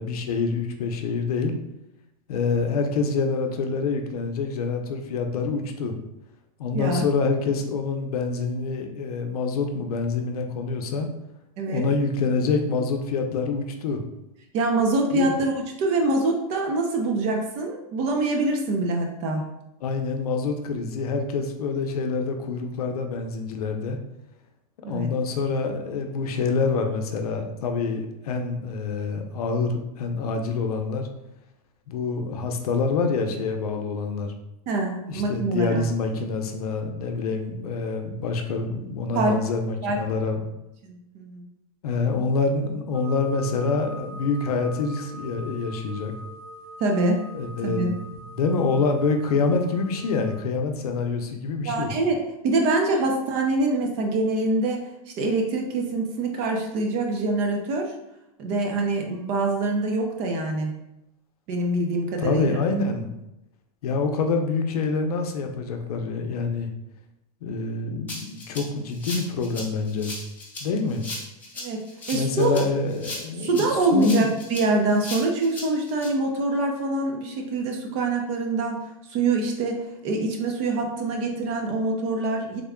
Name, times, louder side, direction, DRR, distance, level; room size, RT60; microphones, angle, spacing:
voice 1, 0.0-1.5 2.3-5.9 6.6-11.1 11.7-14.0 15.1-15.3 19.8-24.0 24.8-31.1 31.9-34.3 35.1-40.4 41.8-46.1 47.3-47.9 48.3-51.9 62.2-63.1 63.8-66.7 67.4-70.1 70.6-71.1 72.1-73.6 73.9-74.3, left 4 dB, 90° left, 5 dB, 0.6 m, -26 dB
voice 2, 11.6-11.9 14.5-19.4 24.8-25.1 34.7-35.9 39.1-39.4 39.8-40.0 40.8-41.4 46.8-47.2 47.6-47.9 51.6-54.9 55.2-57.9 58.4-60.7 61.5-62.6 71.6-72.6 73.4-82.6, right 2 dB, 35° right, 2 dB, 0.6 m, -25 dB
sound 1, 42.9-50.4, right 1 dB, 85° right, 0.4 m, -43 dB
Rattle (instrument), 68.1-76.1, left 2 dB, 10° left, 0.6 m, -37 dB
3.5 x 2.2 x 3.6 m, 0.90 s
supercardioid pair, 160°, 19 cm